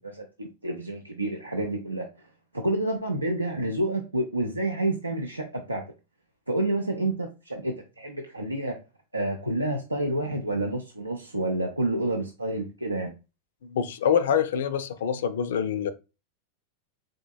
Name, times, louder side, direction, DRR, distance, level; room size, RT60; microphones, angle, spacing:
voice 1, 0.0-2.0 2.5-5.8 6.5-8.8 9.1-13.1, right 1 dB, 85° right, 0.4 m, -29 dB
voice 2, 13.6-15.9, left 8 dB, 60° left, 0.3 m, -25 dB
3.7 x 3.5 x 2.2 m
figure-of-eight pair, 90°, 0 cm